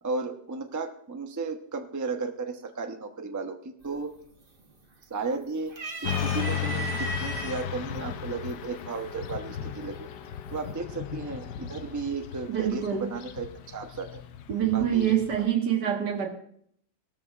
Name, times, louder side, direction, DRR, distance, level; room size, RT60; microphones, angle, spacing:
voice 1, 0.0-4.1 5.1-10.1 10.5-14.2 14.7-15.4, right 4 dB, 15° right, 5 dB, 0.6 m, -34 dB
sound 1, 3.8-4.2 4.6-5.3 5.7-7.6 8.5-8.6 9.8-10.3, right 3 dB, 35° right, 1.5 m, -36 dB
Motorcycle / Traffic noise roadway noise, 6.0-15.4, left 9 dB, 80° left, 1.3 m, -35 dB
voice 2, 12.5-13.1 14.5-16.3, right 10 dB, 85° right, 2 dB, 2.2 m, -25 dB
18.0 x 13.0 x 2.5 m, 0.65 s
omnidirectional pair, 1.8 m